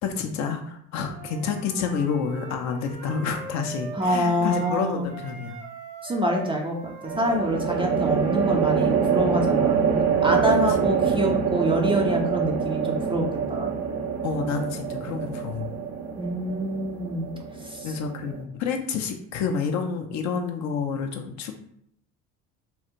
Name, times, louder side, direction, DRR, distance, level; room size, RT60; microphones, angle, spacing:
voice 1, 0.0-5.6 7.5-8.0 10.7-10.8 14.2-15.7 17.8-21.5, left 6 dB, 40° left, 4 dB, 0.5 m, -29 dB
Wind instrument woodwind instrument, 1.1-4.8 5.1-9.0, right 3 dB, 85° right, 1.2 m, -41 dB
sound 1, 3.9-4.5 7.1-18.4, right 6 dB, 70° right, 0.7 m, -25 dB
voice 2, 4.0-5.0 6.0-6.8 7.2-9.8 10.2-13.7 16.2-17.3 17.6-17.9, equal, 15° right, 0 dB, 0.4 m, -26 dB
3.5 x 2.3 x 2.9 m, 0.69 s
figure-of-eight pair, 60°, 44 cm